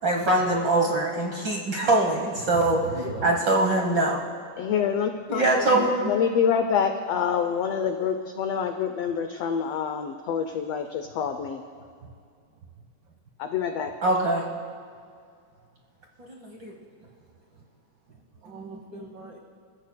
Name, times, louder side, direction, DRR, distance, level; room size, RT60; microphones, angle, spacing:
voice 1, 0.0-2.8 3.2-4.2 5.3-6.1 14.0-14.4 16.3-16.7, right 2 dB, 55° right, 0 dB, 1.2 m, -23 dB
voice 2, 2.5-3.3 18.4-19.4, right 3 dB, 80° right, 2 dB, 1.0 m, -38 dB
voice 3, 4.6-11.6 13.4-13.9, left 7 dB, 85° left, 6 dB, 1.4 m, -27 dB
28.5 x 15.0 x 2.2 m, 2.3 s
omnidirectional pair, 3.6 m